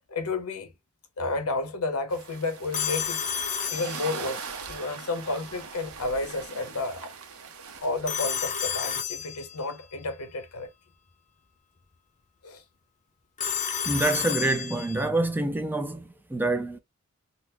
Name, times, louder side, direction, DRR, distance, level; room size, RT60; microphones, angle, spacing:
voice 1, 0.1-0.7 1.2-3.3 3.7-7.1 7.8-10.7 12.4-12.6, left 3 dB, 85° left, 0.9 m, -31 dB
sound 1, 2.1-8.5, right 5 dB, 70° right, 0.8 m, -41 dB
Telephone, 2.7-4.5 8.1-9.7 13.4-15.1, left 8 dB, 35° left, 0.6 m, -31 dB
voice 2, 13.9-16.8, right 2 dB, 10° right, 0.4 m, -26 dB
3.9 x 2.1 x 2.6 m
head